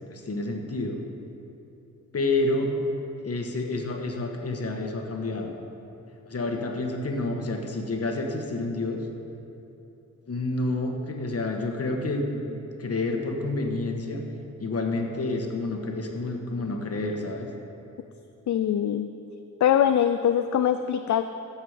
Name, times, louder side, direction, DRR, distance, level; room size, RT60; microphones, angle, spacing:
voice 1, 0.1-1.0 2.1-2.7 3.2-5.5 6.3-9.0 10.3-14.2 14.6-17.5, left 2 dB, 50° left, 3 dB, 1.4 m, -29 dB
voice 2, 18.5-19.1 19.6-21.2, left 9 dB, 65° left, 9 dB, 0.4 m, -22 dB
15.5 x 7.4 x 4.9 m, 2.9 s
wide cardioid pair, 95°, 31 cm